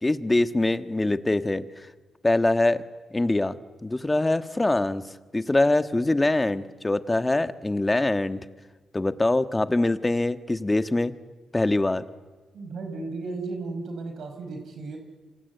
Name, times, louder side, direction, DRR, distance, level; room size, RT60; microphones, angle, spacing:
voice 1, 0.0-1.9 2.2-2.8 3.1-3.6 3.8-5.0 5.3-8.4 8.9-11.1 11.5-12.0, left 2 dB, 20° left, 10 dB, 1.5 m, -23 dB
voice 2, 12.5-15.0, right 3 dB, 70° right, 5 dB, 4.9 m, -34 dB
27.5 x 26.0 x 8.3 m, 1.3 s
cardioid pair, 70°, 0 cm